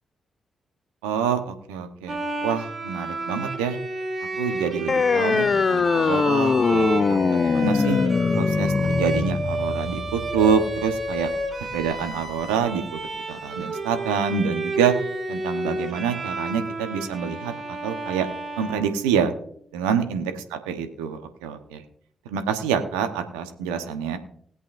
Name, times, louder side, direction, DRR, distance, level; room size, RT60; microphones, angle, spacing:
voice 1, 1.0-3.8 4.4-8.0 8.3-11.3 11.6-13.0 13.3-14.9 15.3-18.3 18.6-19.3 19.7-21.8 22.2-24.2, right 7 dB, 85° right, 7 dB, 1.0 m, -26 dB
Bowed string instrument, 2.1-19.5, right 2 dB, 40° right, 2.1 m, -31 dB
sound 1, 4.9-11.9, left 5 dB, 50° left, 0.5 m, -22 dB
19.5 x 8.3 x 2.6 m, 0.64 s
hypercardioid pair, 40°, 0 cm